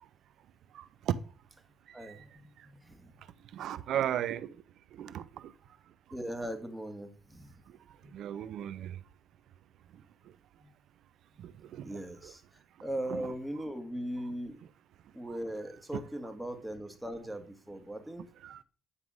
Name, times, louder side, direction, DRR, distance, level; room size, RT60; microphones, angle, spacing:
voice 1, 0.7-1.2 2.0-2.2 3.5-4.6 4.9-5.5 7.9-9.0 11.4-12.3 13.1-13.2 15.3-15.4 18.4-18.6, right 10 dB, 75° right, 0.6 m, -36 dB
voice 2, 1.9-3.1 3.6-3.7 6.1-7.6 8.0-8.1 10.6-10.7 11.8-14.6 15.1-18.3, right 1 dB, 5° right, 1.7 m, -39 dB
9.8 x 3.6 x 6.2 m
cardioid pair, 90°, 0 cm